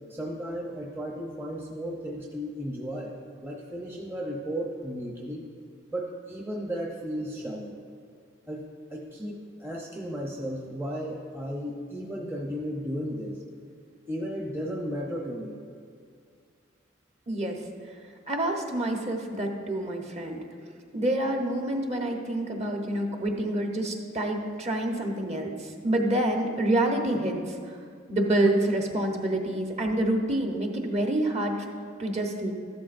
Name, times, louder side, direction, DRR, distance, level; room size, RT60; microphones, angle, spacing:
voice 1, 0.0-5.4 5.9-7.8 8.5-8.6 8.9-13.4 14.1-15.6, equal, 10° right, -2 dB, 0.8 m, -34 dB
voice 2, 17.3-17.6 18.3-20.4 20.9-27.8 28.1-31.5 32.0-32.5, right 1 dB, 35° right, 2 dB, 1.0 m, -27 dB
13.5 x 12.0 x 2.6 m, 2.2 s
head